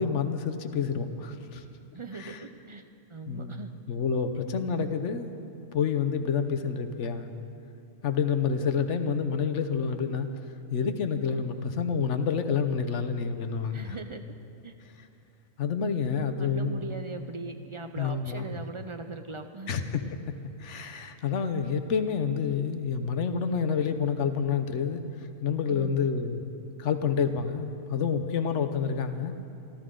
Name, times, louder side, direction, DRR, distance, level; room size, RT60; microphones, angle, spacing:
voice 1, 0.0-1.6 2.1-2.4 3.3-3.6 3.9-5.3 5.7-7.3 8.0-10.3 10.7-14.0 15.6-16.9 18.0-18.4 19.7-20.0 20.6-26.4 26.8-29.3, left 6 dB, 60° left, 8 dB, 1.1 m, -28 dB
voice 2, 1.9-2.8 3.1-3.7 13.7-14.2 14.6-14.7 16.4-19.8 25.6-26.0, right 3 dB, 45° right, 7 dB, 0.4 m, -40 dB
27.5 x 13.0 x 3.8 m, 2.7 s
omnidirectional pair, 1.4 m